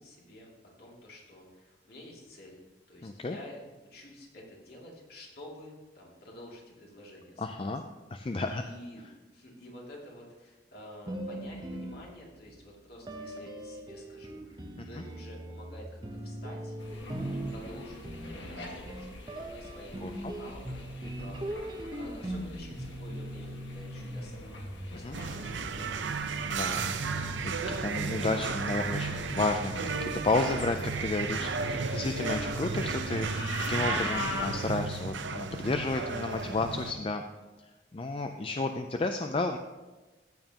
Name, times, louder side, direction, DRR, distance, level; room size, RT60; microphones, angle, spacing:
voice 1, 0.0-2.6 2.9-7.8 8.2-9.1 9.3-24.6 24.9-26.1, left 1 dB, 55° left, -2 dB, 2.5 m, -50 dB
voice 2, 3.0-3.4 7.4-7.8 8.1-8.6 14.8-15.0 20.0-20.3 25.0-25.2 26.4-27.3 27.8-37.2 37.9-39.6, left 3 dB, 30° left, 6 dB, 0.4 m, -32 dB
sound 1, 11.1-12.5 13.1-25.3, right 1 dB, 20° right, 0.9 m, -40 dB
sound 2, 16.8-34.5, left 2 dB, 70° left, 1.7 m, -43 dB
sound 3, 25.1-36.9, right 4 dB, 75° right, 0.7 m, -33 dB
14.0 x 9.0 x 2.9 m, 1.2 s
head